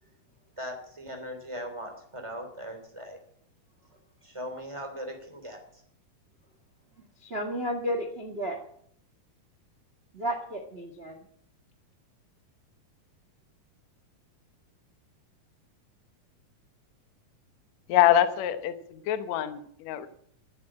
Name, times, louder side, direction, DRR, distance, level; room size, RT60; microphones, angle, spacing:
voice 1, 0.6-3.2 4.2-5.8, equal, 10° right, 4 dB, 2.6 m, -39 dB
voice 2, 7.2-8.6 10.1-11.2, equal, 60° right, 5 dB, 0.6 m, -32 dB
voice 3, 17.9-20.1, left 11 dB, 65° left, 10 dB, 2.0 m, -24 dB
13.5 x 8.4 x 8.8 m, 0.64 s
omnidirectional pair, 4.1 m